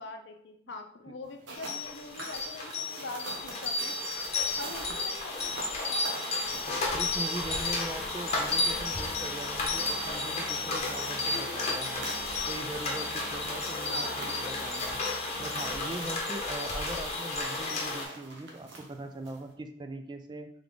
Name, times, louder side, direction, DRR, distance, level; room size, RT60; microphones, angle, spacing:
voice 1, 0.0-3.9 4.6-6.6 11.2-11.6 13.9-14.4, left 3 dB, 70° left, 5 dB, 0.6 m, -43 dB
sound 1, 1.2-19.5, right 2 dB, 75° right, 1.0 m, -47 dB
sound 2, 1.6-18.0, left 3 dB, 35° left, 0.9 m, -32 dB
voice 2, 6.9-12.0 12.5-15.0 15.4-20.5, right 2 dB, 25° right, 7 dB, 0.3 m, -41 dB
Musical instrument, 7.8-15.7, equal, ahead, 0.7 m, -51 dB
3.5 x 3.4 x 3.8 m, 0.64 s
head